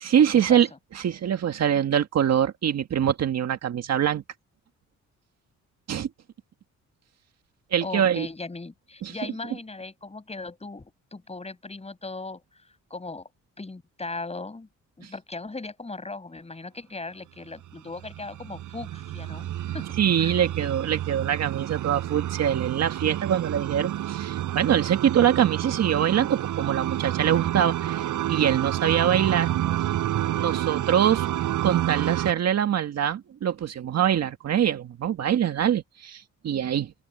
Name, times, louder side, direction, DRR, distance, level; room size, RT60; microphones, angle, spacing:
voice 1, 0.0-0.7 0.9-4.2 5.9-6.1 7.7-8.3 9.0-9.1 15.0-15.1 20.0-29.5 29.8-29.9 30.4-31.3 31.6-36.9, right 9 dB, 60° right, 1.8 m, -24 dB
voice 2, 7.8-12.4 12.9-13.3 13.6-14.7 15.0-19.9 20.2-20.4, left 3 dB, 20° left, 6.6 m, -38 dB
sound 1, 18.0-32.3, right 12 dB, 80° right, 7.7 m, -29 dB
open air
cardioid pair, 90°, 30 cm